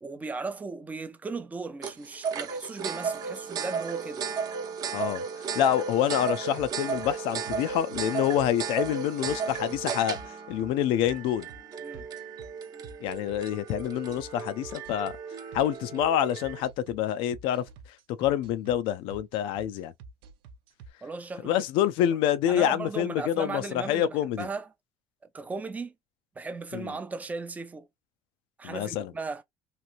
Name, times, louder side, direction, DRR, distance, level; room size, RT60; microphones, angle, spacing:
voice 1, 0.0-4.3 11.8-12.1 21.0-21.6 22.5-24.7 25.3-25.9 26.4-27.9 28.6-29.4, right 4 dB, 15° right, 0.5 m, -37 dB
sound 1, 1.8-16.6, right 6 dB, 45° right, 0.8 m, -35 dB
voice 2, 4.9-11.5 13.0-15.1 15.5-17.6 18.2-19.9 21.4-24.5 26.7-26.9 28.6-29.1, left 11 dB, 75° left, 0.4 m, -27 dB
sound 2, 6.6-20.9, right 4 dB, 80° right, 0.6 m, -47 dB
3.0 x 2.5 x 2.5 m
cardioid pair, 125°, 9 cm